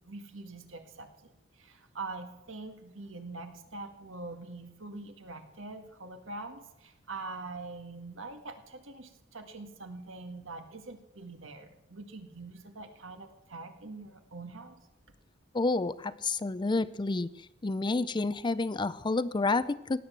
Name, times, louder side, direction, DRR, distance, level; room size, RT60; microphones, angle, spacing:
voice 1, 0.0-14.8, right 3 dB, 75° right, 6 dB, 1.9 m, -44 dB
voice 2, 15.5-17.3 17.6-20.0, left 3 dB, 25° left, 16 dB, 0.4 m, -29 dB
17.0 x 10.5 x 7.5 m, 0.91 s
head